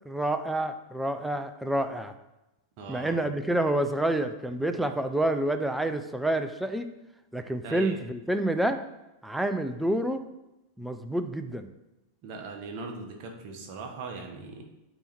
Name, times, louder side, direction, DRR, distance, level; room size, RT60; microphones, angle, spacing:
voice 1, 0.1-2.1 2.9-6.9 7.3-8.8 9.2-10.2 10.8-11.7, right 1 dB, 5° right, 8 dB, 0.5 m, -28 dB
voice 2, 2.8-3.2 7.6-8.0 12.2-14.6, right 3 dB, 45° right, 2 dB, 1.1 m, -39 dB
8.7 x 3.1 x 4.4 m, 0.95 s
figure-of-eight pair, 90°, 0 cm